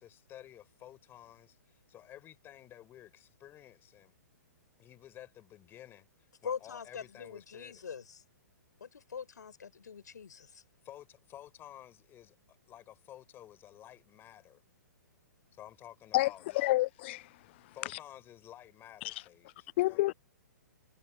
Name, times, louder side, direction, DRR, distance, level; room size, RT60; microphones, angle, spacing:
voice 1, 0.0-4.1 4.8-7.8 10.8-14.6 15.5-16.8 17.7-20.0, left 12 dB, 20° left, 6.0 m, -53 dB
voice 2, 6.4-8.2 8.8-10.6, left 6 dB, 70° left, 5.7 m, -43 dB
voice 3, 16.5-17.3 19.8-20.1, left 18 dB, 40° left, 0.4 m, -28 dB
figure-of-eight pair, 120°, 10 cm